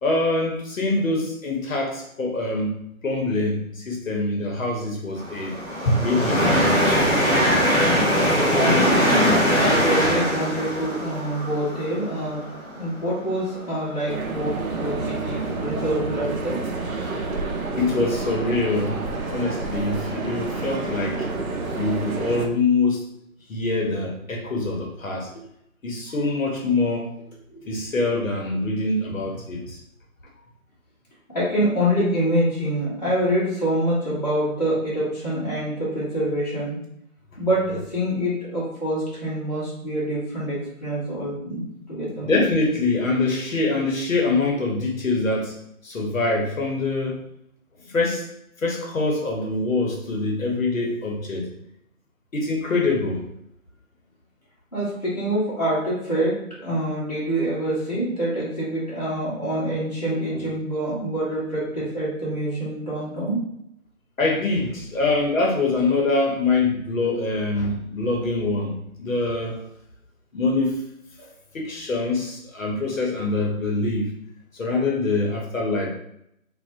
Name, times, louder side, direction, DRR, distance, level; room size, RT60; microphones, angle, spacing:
voice 1, 0.0-2.7 3.0-5.5 5.8-6.9 17.8-21.2 21.8-23.0 23.5-25.3 25.8-27.1 27.7-29.8 42.2-45.5 45.8-47.2 47.8-48.3 48.6-51.5 52.3-53.2 60.3-60.4 64.2-69.6 70.3-70.8 71.2-71.3 71.5-74.1 74.5-75.9, left 3 dB, 65° left, -1 dB, 0.7 m, -24 dB
sound 1, 5.2-13.9 14.5-14.6 15.4-15.5, equal, 5° left, 1.1 m, -21 dB
voice 2, 8.5-12.4 12.7-16.6 24.6-24.7 27.5-27.7 31.3-36.8 37.4-41.6 41.9-42.3 54.7-63.4, right 1 dB, 30° left, -10 dB, 0.6 m, -26 dB
sound 2, 14.1-22.5, right 3 dB, 75° right, 0.6 m, -29 dB
2.4 x 2.1 x 2.6 m, 0.76 s
figure-of-eight pair, 165°, 43 cm